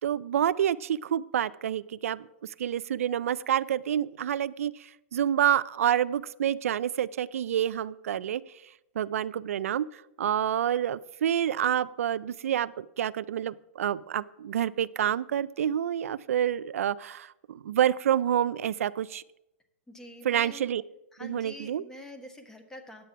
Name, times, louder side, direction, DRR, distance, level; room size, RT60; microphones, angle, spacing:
voice 1, 0.0-2.2 2.6-8.4 9.0-19.2 20.2-20.8 21.2-21.8, right 10 dB, 85° right, 17 dB, 0.3 m, -28 dB
voice 2, 19.9-20.6 21.1-23.0, left 1 dB, 5° left, 6 dB, 1.1 m, -46 dB
9.1 x 7.5 x 5.6 m, 0.87 s
hypercardioid pair, 140°, 7 cm